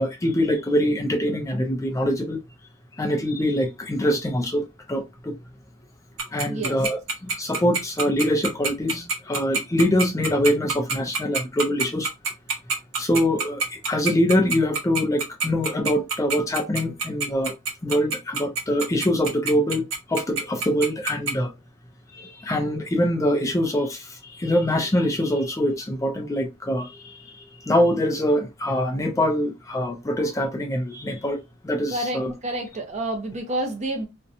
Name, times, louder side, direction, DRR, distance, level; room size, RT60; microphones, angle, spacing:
voice 1, 0.0-2.4 3.0-5.3 6.3-12.1 13.0-17.5 17.8-21.5 22.1-27.3 27.6-32.3, left 1 dB, 15° left, 0.4 m, -24 dB
Tick-tock, 6.2-21.3, right 4 dB, 85° right, 0.9 m, -25 dB
voice 2, 6.5-6.8 31.9-34.1, right 1 dB, 35° right, 0.6 m, -29 dB
2.6 x 2.2 x 2.5 m
head